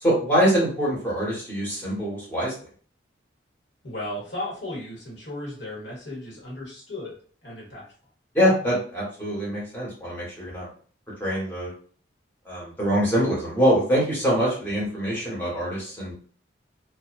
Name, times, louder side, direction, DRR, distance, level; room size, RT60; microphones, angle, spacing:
voice 1, 0.0-2.5 8.3-10.7 11.2-11.7 12.5-16.1, equal, 10° left, -7 dB, 1.2 m, -24 dB
voice 2, 3.8-7.2 7.4-7.8, left 1 dB, 75° left, -4 dB, 1.1 m, -35 dB
2.5 x 2.2 x 2.4 m, 0.44 s
head